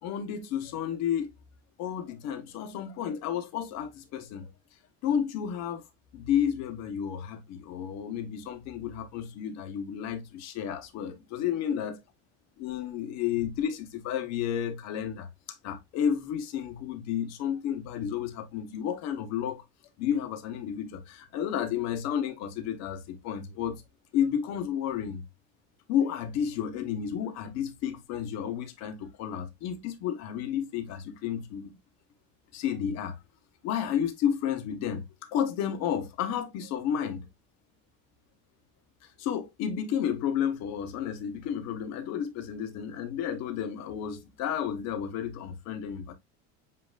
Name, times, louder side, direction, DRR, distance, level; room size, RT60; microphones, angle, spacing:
voice 1, 0.0-1.3 1.8-4.5 5.0-5.8 6.1-11.9 12.6-15.3 15.6-19.6 20.0-23.8 24.1-25.2 25.9-31.8 32.5-33.2 33.6-37.3 39.2-46.1, left 9 dB, 60° left, 1.2 m, -31 dB
7.7 x 2.9 x 2.4 m
cardioid pair, 155°, 30 cm